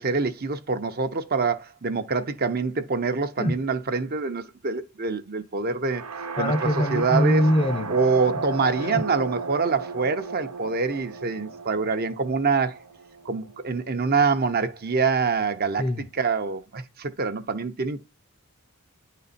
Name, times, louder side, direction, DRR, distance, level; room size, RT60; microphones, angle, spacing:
voice 1, 0.0-6.1 6.4-6.5 6.9-7.4 7.9-12.8 13.2-15.9 16.2-18.0, right 4 dB, 45° right, 0.8 m, -25 dB
sound 1, 5.9-13.8, right 4 dB, 90° right, 1.0 m, -35 dB
voice 2, 6.4-7.9 8.8-9.0 15.8-16.1, equal, 25° left, 0.7 m, -23 dB
9.6 x 4.1 x 4.2 m
head